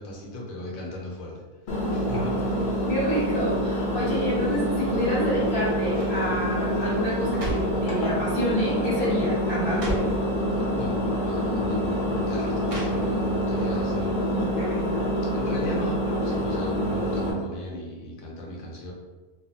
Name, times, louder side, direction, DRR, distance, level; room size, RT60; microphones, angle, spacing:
voice 1, 0.0-2.5 10.8-10.9 11.2-14.3 15.3-18.9, left 1 dB, 70° left, -2 dB, 1.0 m, -37 dB
Engine, 1.7-17.3, equal, 55° left, 0.6 m, -26 dB
voice 2, 2.9-10.0 14.3-14.9, equal, 35° right, -10 dB, 0.4 m, -28 dB
sound 1, 5.1-5.5 5.9-6.2 7.0-7.8 8.6-8.9 9.2-9.3 9.6-10.2 11.2-11.3 12.6-13.4 13.8-13.9, right 1 dB, 55° right, 0.8 m, -35 dB
2.6 x 2.4 x 2.6 m, 1.3 s
omnidirectional pair, 1.6 m